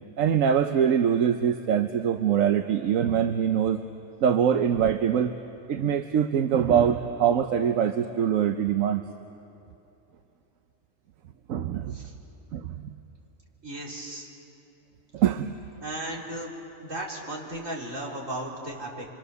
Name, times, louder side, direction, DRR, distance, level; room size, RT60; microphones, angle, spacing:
voice 1, 0.2-3.8 4.2-5.3 5.7-9.0 11.5-11.9 12.5-12.9 15.1-15.5, right 8 dB, 90° right, 8 dB, 1.2 m, -23 dB
voice 2, 13.6-14.3 15.8-16.5 16.8-19.1, right 1 dB, 75° right, -3 dB, 4.2 m, -35 dB
26.5 x 25.5 x 6.9 m, 2.8 s
omnidirectional pair, 1.4 m